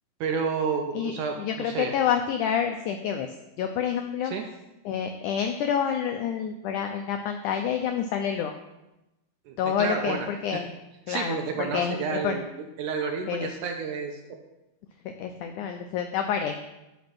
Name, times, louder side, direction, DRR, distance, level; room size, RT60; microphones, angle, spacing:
voice 1, 0.2-1.9 4.2-4.4 9.5-10.3 11.1-12.5 12.8-14.4, right 5 dB, 75° right, 3 dB, 2.0 m, -30 dB
voice 2, 1.4-4.3 4.9-8.5 9.6-10.7 11.1-12.4 13.3-13.5 15.2-16.6, left 8 dB, 85° left, 5 dB, 1.7 m, -28 dB
11.5 x 5.2 x 6.0 m, 0.98 s
omnidirectional pair, 4.3 m